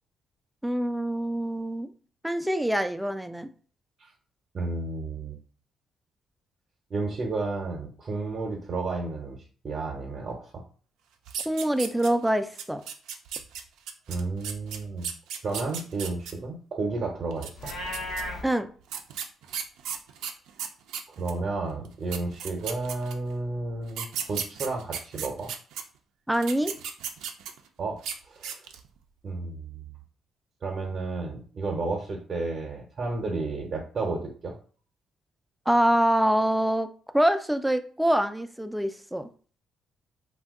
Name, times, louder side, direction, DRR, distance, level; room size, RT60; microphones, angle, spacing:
voice 1, 0.6-1.9 2.2-3.5 11.5-12.8 18.4-18.7 26.3-26.7 35.7-36.9 37.1-39.3, right 1 dB, 5° right, 9 dB, 0.3 m, -25 dB
voice 2, 4.5-5.4 6.9-9.4 9.6-10.6 14.1-15.1 15.4-17.5 21.2-25.5 27.8-28.0 28.3-28.6 29.2-29.9 30.6-34.5, right 3 dB, 45° right, 0 dB, 0.7 m, -32 dB
sound 1, 11.3-12.3 12.6-16.3 17.3-18.2 18.9-21.4 21.8-21.9 22.1-23.3 23.9-25.8 26.3-27.7 28.0-28.2 28.4-28.9, right 8 dB, 90° right, 0.3 m, -35 dB
Livestock farm animals working animals, 17.5-18.4, left 1 dB, 65° left, 0.8 m, -34 dB
2.6 x 2.2 x 3.5 m, 0.41 s
cardioid pair, 90°, 0 cm